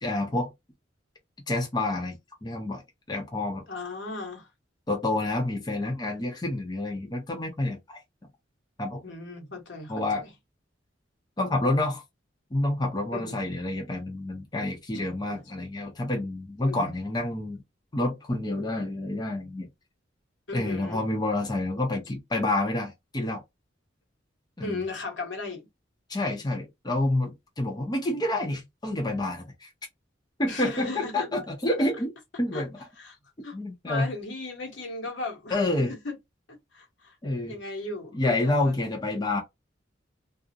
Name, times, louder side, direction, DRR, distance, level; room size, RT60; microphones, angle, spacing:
voice 1, 0.0-0.5 1.5-2.8 3.1-3.6 4.9-8.0 8.8-9.0 9.9-10.3 11.4-12.0 12.5-17.6 17.9-19.7 20.5-23.4 24.6-24.8 26.1-29.7 30.4-32.1 32.4-32.8 33.5-34.1 35.5-35.9 37.2-37.6 38.1-39.4, left 2 dB, 20° left, 0.6 m, -28 dB
voice 2, 3.7-4.5 9.0-9.9 13.1-13.4 15.3-15.4 16.6-16.9 20.5-21.0 24.6-25.7 30.4-31.3 32.5-32.6 33.0-33.2 33.4-33.6 33.9-36.2 36.5-37.1 37.5-38.7, left 3 dB, 70° left, 1.0 m, -36 dB
2.3 x 2.0 x 2.6 m
head